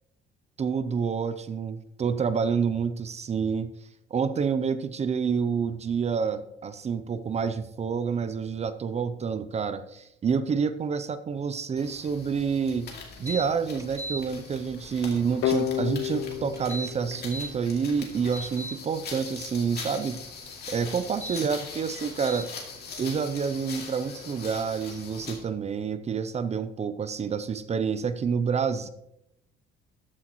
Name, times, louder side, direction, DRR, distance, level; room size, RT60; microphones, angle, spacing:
voice 1, 0.6-3.7 4.1-12.9 13.2-20.2 20.7-22.5 23.0-28.9, right 6 dB, 30° right, 12 dB, 0.6 m, -28 dB
sound 1, 11.8-25.5, left 4 dB, 50° left, 2.5 m, -42 dB
sound 2, 13.3-13.4 13.8-14.2 16.5-17.5 18.0-18.7 21.1-21.4 22.3-22.4, right 1 dB, 15° right, 0.9 m, -36 dB
sound 3, 15.4-18.2, left 10 dB, 70° left, 0.8 m, -31 dB
14.0 x 7.8 x 3.1 m, 0.82 s
cardioid pair, 130°, 21 cm